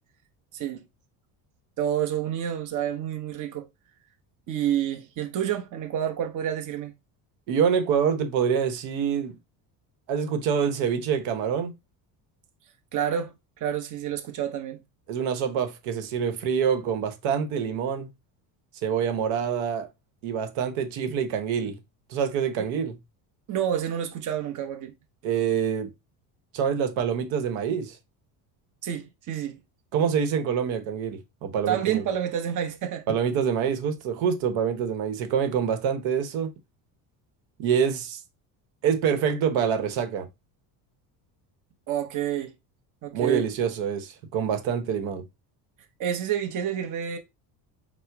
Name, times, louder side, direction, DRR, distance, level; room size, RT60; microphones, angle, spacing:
voice 1, 0.5-0.8 1.8-3.7 4.5-6.9 12.9-14.8 22.6-22.7 23.5-24.9 28.8-29.6 31.7-33.0 41.9-42.5 43.0-43.5 46.0-47.2, right 10 dB, 40° right, 0.9 m, -29 dB
voice 2, 7.5-9.4 10.1-11.7 15.1-18.1 18.8-19.9 20.2-21.8 22.1-22.9 25.2-25.9 26.5-28.0 29.9-32.0 33.1-36.5 37.6-38.2 38.8-40.3 43.1-45.2, right 7 dB, 75° right, 1.1 m, -26 dB
4.3 x 2.1 x 4.5 m
cardioid pair, 125°, 46 cm